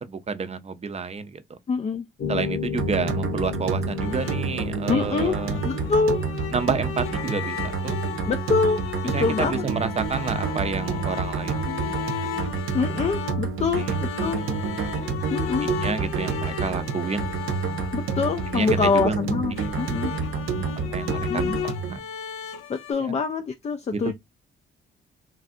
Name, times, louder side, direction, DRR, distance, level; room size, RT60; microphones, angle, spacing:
voice 1, 0.0-1.6 2.3-5.6 6.5-8.0 9.1-11.6 13.8-13.9 15.6-17.3 18.5-19.2 20.9-22.0 23.0-23.2 23.9-24.1, right 5 dB, 30° right, 0.5 m, -29 dB
voice 2, 1.7-2.1 4.9-5.4 5.6-6.2 8.3-9.7 11.7-11.8 12.7-14.4 15.3-15.7 17.9-20.1 21.3-21.6 22.7-24.1, left 4 dB, 30° left, 0.4 m, -25 dB
sound 1, 2.2-8.7, left 7 dB, 60° left, 1.1 m, -34 dB
sound 2, 2.8-22.0, right 5 dB, 70° right, 0.6 m, -29 dB
sound 3, 4.0-22.9, left 7 dB, 85° left, 0.6 m, -35 dB
3.2 x 2.4 x 2.5 m
supercardioid pair, 65°, 21 cm